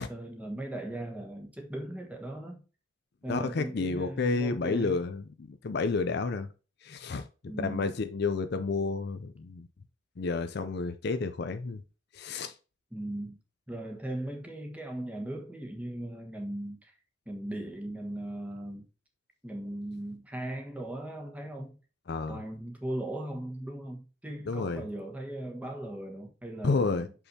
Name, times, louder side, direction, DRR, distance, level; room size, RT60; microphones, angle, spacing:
voice 1, 0.0-2.6 3.2-5.0 7.4-7.9 12.9-13.4 13.7-16.9 17.3-18.8 19.4-21.8 22.3-27.1, right 1 dB, 5° right, 1.3 m, -38 dB
voice 2, 3.3-6.5 6.8-7.3 7.6-9.7 10.2-11.8 12.1-12.5 22.1-22.4 24.5-24.9 26.6-27.1, left 4 dB, 55° left, 0.5 m, -30 dB
6.2 x 5.6 x 2.8 m
head